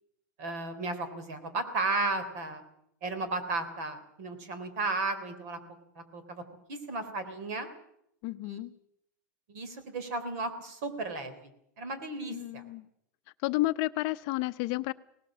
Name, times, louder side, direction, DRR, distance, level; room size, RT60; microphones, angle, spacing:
voice 1, 0.4-2.6 3.0-5.6 6.0-6.4 6.7-7.7 8.4-8.6 9.5-11.5 11.8-12.6, right 3 dB, 55° right, 10 dB, 3.5 m, -34 dB
voice 2, 8.2-8.7 12.3-12.9 13.4-14.9, left 19 dB, 35° left, 12 dB, 0.7 m, -31 dB
19.0 x 18.5 x 7.5 m, 0.74 s
supercardioid pair, 165°, 10 cm